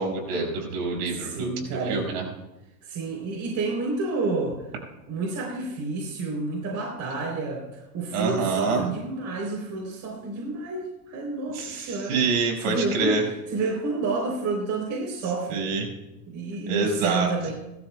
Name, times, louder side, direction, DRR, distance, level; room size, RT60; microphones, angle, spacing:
voice 1, 0.0-2.2 8.1-8.8 11.5-13.2 15.5-15.9 16.7-17.3, right 4 dB, 60° right, 0 dB, 5.9 m, -27 dB
voice 2, 1.1-2.0 2.8-4.6 5.1-12.1 12.6-13.2 13.5-15.6 16.3-17.5, right 3 dB, 40° right, -1 dB, 3.5 m, -29 dB
30.0 x 13.0 x 2.3 m, 0.99 s
supercardioid pair, 125°, 46 cm